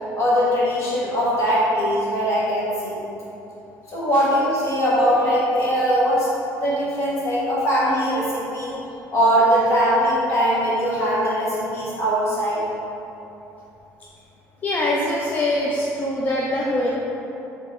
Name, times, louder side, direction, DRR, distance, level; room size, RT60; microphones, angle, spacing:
voice 1, 0.1-3.0 3.9-6.3 6.6-8.7 9.1-12.6, equal, 50° left, -7 dB, 1.1 m, -21 dB
voice 2, 14.6-16.9, left 1 dB, 30° left, -4 dB, 0.3 m, -23 dB
3.4 x 2.8 x 3.2 m, 3.0 s
cardioid pair, 125°, 6 cm